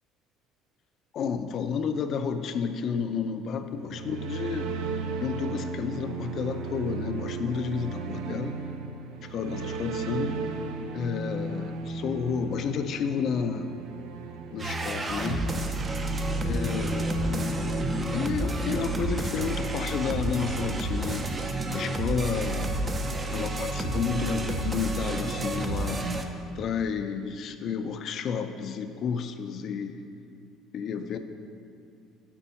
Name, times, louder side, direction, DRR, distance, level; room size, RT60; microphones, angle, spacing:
voice 1, 1.1-4.7 5.2-8.6 9.3-10.4 10.9-13.7 14.5-15.5 16.4-17.6 18.1-22.7 23.3-26.3 26.6-30.0 30.7-31.2, left 6 dB, 40° left, 9 dB, 0.5 m, -31 dB
sound 1, 3.7-18.9, right 3 dB, 90° right, 0.7 m, -35 dB
sound 2, 14.6-26.2, right 2 dB, 20° right, 0.5 m, -30 dB
6.9 x 5.5 x 7.0 m, 2.4 s
cardioid pair, 160°, 0 cm